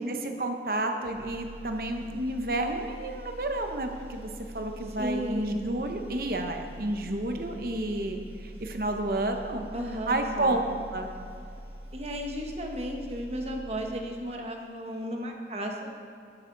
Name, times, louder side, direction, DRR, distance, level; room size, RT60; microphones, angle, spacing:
voice 1, 0.0-9.7 10.1-10.6 10.9-11.1, right 1 dB, 55° right, 4 dB, 1.0 m, -31 dB
sound 1, 1.0-14.4, equal, 70° right, 2.8 m, -44 dB
voice 2, 5.0-5.6 9.7-10.6 11.9-15.9, equal, 35° right, 2 dB, 1.3 m, -34 dB
11.5 x 11.0 x 4.0 m, 2.5 s
head